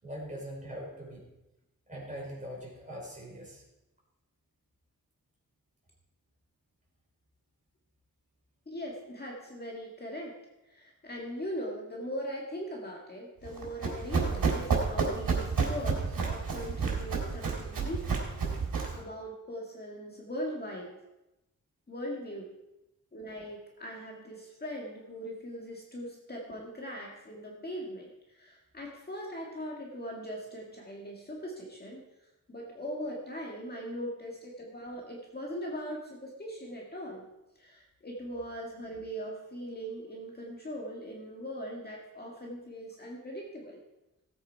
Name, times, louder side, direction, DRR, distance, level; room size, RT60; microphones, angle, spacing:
voice 1, 0.0-1.3 1.9-3.6, equal, 20° right, -3 dB, 4.9 m, -42 dB
voice 2, 8.7-10.3 10.7-18.2 18.9-21.0 21.9-22.5 23.1-32.0 32.5-37.3 37.6-43.8, equal, 30° left, -2 dB, 2.0 m, -40 dB
Run, 13.4-19.0, right 5 dB, 85° right, 3.6 m, -30 dB
17.5 x 8.3 x 4.6 m, 0.94 s
wide cardioid pair, 150°, 33 cm